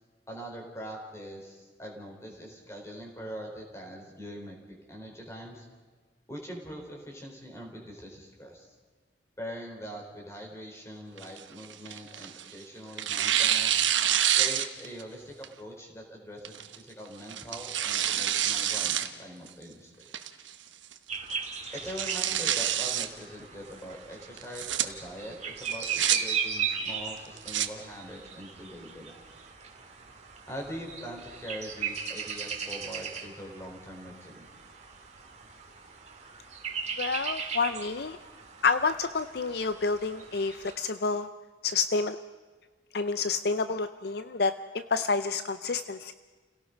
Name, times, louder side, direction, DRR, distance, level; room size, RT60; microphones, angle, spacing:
voice 1, 0.3-4.6 4.9-5.7 6.3-8.7 9.4-13.8 14.3-20.1 21.7-29.2 30.5-34.5, equal, 15° left, 1 dB, 4.2 m, -42 dB
Tearing, 11.2-12.5 13.0-15.0 15.4-15.5 16.4-16.7 17.3-19.1 19.5-19.6 20.1-20.5 20.9-21.0 21.3-21.4 21.8-23.1 24.4-24.8 25.6-26.2 27.2-27.7, right 10 dB, 85° right, 1.2 m, -27 dB
sound 1, 21.1-40.7, right 6 dB, 35° right, 2.2 m, -38 dB
voice 2, 37.0-38.2 38.6-41.3 41.6-42.2 42.9-46.1, left 4 dB, 55° left, 12 dB, 0.5 m, -29 dB
30.0 x 17.5 x 5.3 m, 1.4 s
head